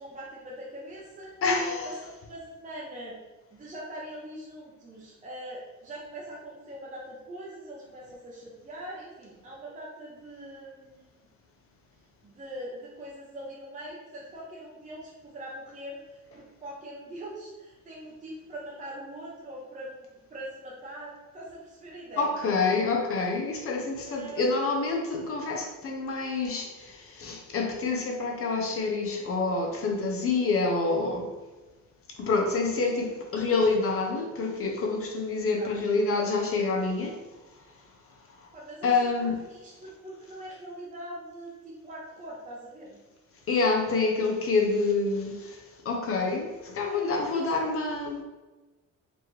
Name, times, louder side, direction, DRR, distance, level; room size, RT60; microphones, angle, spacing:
voice 1, 0.0-1.4 1.8-3.2 3.5-11.1 12.2-16.0 16.3-22.5 24.0-24.4 35.4-35.7 38.5-43.0 46.9-47.5, right 1 dB, 25° right, -6 dB, 0.6 m, -42 dB
voice 2, 1.4-1.9 22.2-31.3 32.2-37.2 38.8-39.3 43.5-48.2, left 3 dB, 45° left, 1 dB, 0.6 m, -27 dB
4.3 x 2.9 x 3.1 m, 1.2 s
cardioid pair, 165°, 31 cm